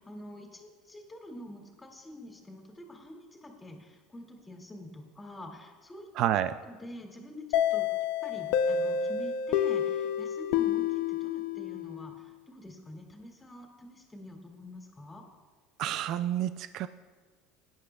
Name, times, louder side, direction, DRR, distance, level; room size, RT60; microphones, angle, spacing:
voice 1, 0.0-6.1 6.6-7.8 8.2-15.3, left 1 dB, 15° left, 1 dB, 2.2 m, -46 dB
voice 2, 6.2-6.6 15.8-16.9, right 11 dB, 60° right, 13 dB, 0.3 m, -29 dB
sound 1, 7.5-12.2, left 8 dB, 75° left, 0.5 m, -29 dB
17.5 x 9.7 x 2.3 m, 1.4 s
supercardioid pair, 95°, 0 cm